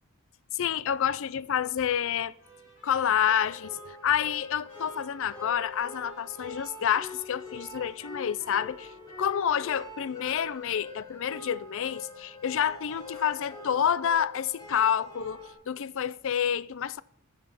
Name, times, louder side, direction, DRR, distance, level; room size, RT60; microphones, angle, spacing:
voice 1, 0.5-2.3 2.8-8.9 9.2-17.0, left 9 dB, 65° left, 0.4 m, -28 dB
Trumpet, 2.0-7.5, equal, 40° left, 5.0 m, -60 dB
sound 1, 2.4-4.8 5.4-6.8 8.4-9.9, right 3 dB, 15° right, 1.3 m, -59 dB
sound 2, 3.2-15.5, left 2 dB, 20° left, 3.9 m, -44 dB
12.5 x 8.0 x 5.6 m
head